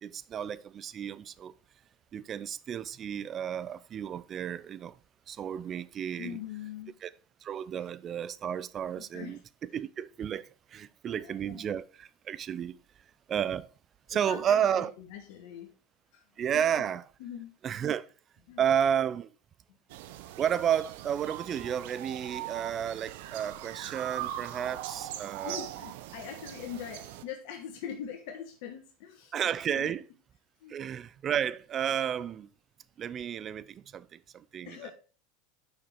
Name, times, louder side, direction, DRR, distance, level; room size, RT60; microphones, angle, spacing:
voice 1, 0.0-1.5 2.1-5.0 5.3-6.4 7.0-7.1 7.4-9.4 9.7-12.8 13.3-13.7 14.1-14.9 16.4-17.0 17.6-18.0 18.6-19.3 20.4-25.6 29.3-30.0 30.7-32.5 33.0-34.9, right 9 dB, 35° right, 0.5 m, -32 dB
voice 2, 6.2-6.9 9.0-9.4 11.1-11.6 14.1-15.7 16.1-16.2 16.5-16.9 17.2-17.5 18.5-18.6 25.4-29.5 29.7-29.9 30.6-30.8 34.6-34.9, left 9 dB, 65° left, 1.3 m, -42 dB
sound 1, 19.9-27.2, right 13 dB, 70° right, 0.7 m, -41 dB
6.4 x 5.9 x 4.5 m
hypercardioid pair, 95°, 0 cm